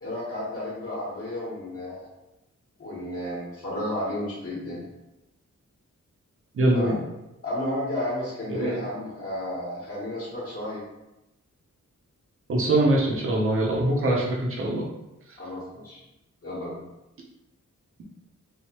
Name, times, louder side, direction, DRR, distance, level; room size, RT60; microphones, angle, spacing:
voice 1, 0.0-2.1 2.8-4.8 6.7-7.0 7.4-10.8 15.4-16.0 16.4-16.8, left 1 dB, 50° left, -9 dB, 1.0 m, -32 dB
voice 2, 6.5-6.9 8.5-8.8 12.5-14.9, right 1 dB, 45° right, -2 dB, 0.6 m, -23 dB
3.1 x 2.1 x 2.9 m, 0.94 s
wide cardioid pair, 155°, 30 cm